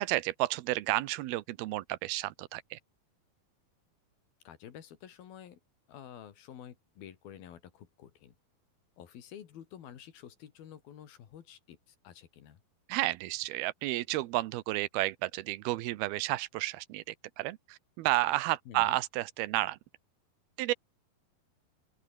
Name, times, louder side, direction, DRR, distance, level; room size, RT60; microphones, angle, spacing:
voice 1, 0.0-2.8 12.9-19.8 20.6-20.7, right 17 dB, 90° right, 2.8 m, -31 dB
voice 2, 4.5-5.6 5.9-8.3 9.0-12.6 18.7-19.0, left 10 dB, 75° left, 4.1 m, -50 dB
open air
omnidirectional pair, 4.3 m